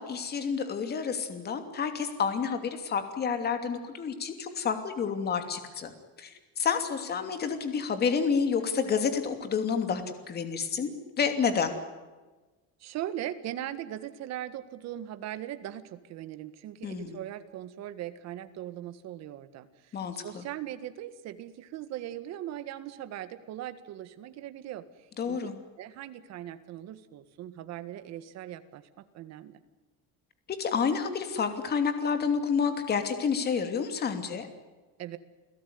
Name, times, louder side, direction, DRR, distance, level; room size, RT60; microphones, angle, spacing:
voice 1, 0.0-5.9 6.2-11.7 16.8-17.2 19.9-20.4 25.2-25.6 30.6-34.5, left 6 dB, 30° left, 7 dB, 2.9 m, -29 dB
voice 2, 12.8-20.0 20.2-24.8 25.3-25.4 25.8-29.6 35.0-35.2, right 12 dB, 50° right, 11 dB, 1.8 m, -39 dB
29.5 x 17.0 x 9.6 m, 1.2 s
cardioid pair, 170°, 33 cm